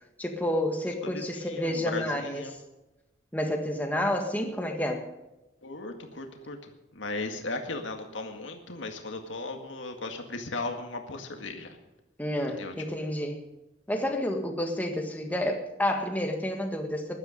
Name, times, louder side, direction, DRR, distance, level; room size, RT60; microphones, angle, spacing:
voice 1, 0.2-2.4 3.3-5.0 12.2-13.4 13.9-17.2, left 1 dB, 10° left, 3 dB, 1.7 m, -30 dB
voice 2, 1.0-2.6 5.6-11.8 12.5-12.7, left 2 dB, 85° left, 4 dB, 2.0 m, -37 dB
15.5 x 12.0 x 5.3 m, 0.99 s
head